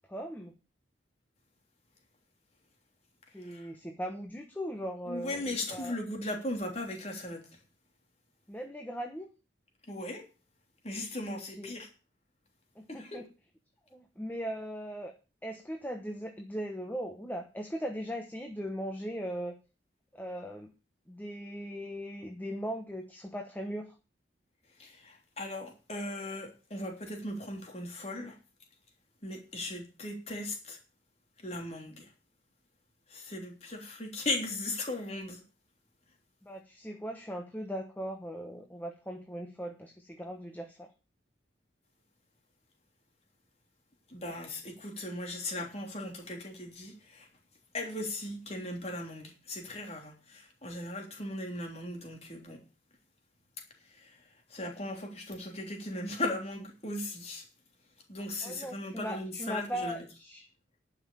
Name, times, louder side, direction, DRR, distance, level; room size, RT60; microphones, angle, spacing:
voice 1, 0.1-0.5 3.3-6.0 8.5-9.3 11.3-11.7 12.8-13.2 13.9-15.1 15.4-19.6 20.1-20.7 21.1-24.0 36.4-40.9 58.4-60.5, equal, 10° left, 1.1 m, -39 dB
voice 2, 3.4-3.7 5.0-7.6 9.8-10.3 10.8-11.9 12.9-13.2 24.8-28.4 29.2-30.8 31.4-32.1 33.1-35.4 44.1-47.3 47.7-52.6 53.8-57.5 58.1-60.0, left 2 dB, 35° left, 3.3 m, -38 dB
11.0 x 5.9 x 8.6 m
head